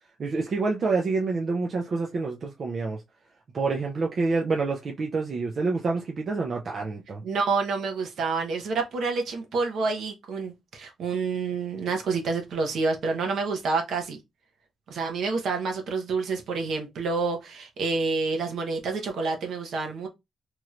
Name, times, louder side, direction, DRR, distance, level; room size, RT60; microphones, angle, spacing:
voice 1, 0.2-3.0 3.5-7.2, right 3 dB, 40° right, 0.4 m, -27 dB
voice 2, 7.2-14.2 14.9-20.1, right 4 dB, 65° right, 0.9 m, -28 dB
3.0 x 2.5 x 3.0 m
wide cardioid pair, 170°, 0 cm